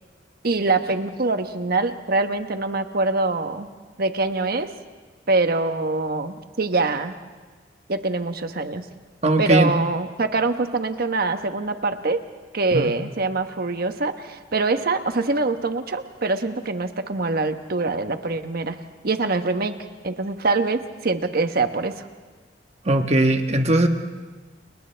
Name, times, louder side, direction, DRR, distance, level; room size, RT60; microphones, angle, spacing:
voice 1, 0.4-3.7 4.0-4.7 5.3-7.1 7.9-8.8 9.4-12.2 12.5-18.8 19.0-19.7 20.0-22.1, right 3 dB, 55° right, 8 dB, 1.2 m, -24 dB
voice 2, 9.2-9.7 12.7-12.9 22.8-23.9, right 1 dB, 35° right, 5 dB, 1.3 m, -19 dB
29.5 x 29.5 x 3.4 m, 1.4 s
head